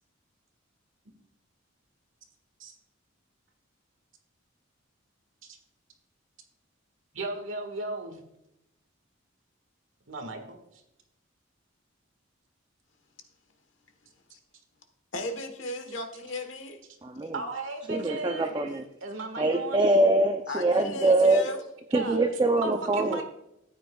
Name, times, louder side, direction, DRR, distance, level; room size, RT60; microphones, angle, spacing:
voice 1, 7.1-8.2 10.1-10.8 17.3-18.5 19.0-19.8 21.9-22.2 22.6-23.2, right 2 dB, 70° right, 5 dB, 1.7 m, -36 dB
voice 2, 15.1-16.8 20.5-21.6, left 1 dB, 70° left, 6 dB, 1.3 m, -35 dB
voice 3, 17.0-17.4 17.9-18.8 19.4-21.4 21.9-23.2, right 2 dB, 20° right, 5 dB, 0.5 m, -24 dB
13.5 x 9.2 x 2.3 m, 0.82 s
head